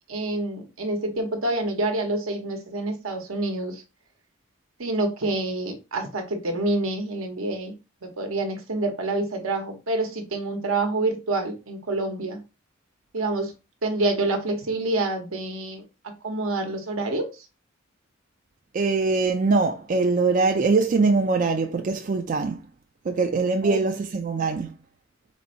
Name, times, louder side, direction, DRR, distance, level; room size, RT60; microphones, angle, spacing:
voice 1, 0.1-3.8 4.8-7.7 8.0-12.4 13.1-13.5 13.8-17.3 23.6-23.8, right 2 dB, 75° right, 1.1 m, -27 dB
voice 2, 18.7-22.6 23.0-24.7, right 3 dB, 40° right, 0.4 m, -22 dB
4.1 x 2.6 x 4.3 m
head